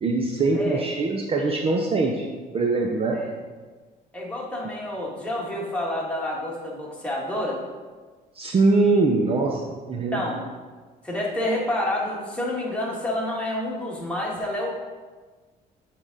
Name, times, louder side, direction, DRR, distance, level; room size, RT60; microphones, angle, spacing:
voice 1, 0.0-2.3 2.5-3.2 8.3-10.3, right 3 dB, 35° right, 1 dB, 0.6 m, -22 dB
voice 2, 4.1-7.6 10.1-10.4 11.0-14.7, left 1 dB, 5° left, -4 dB, 1.7 m, -28 dB
8.3 x 3.7 x 3.9 m, 1.4 s
cardioid pair, 110°, 17 cm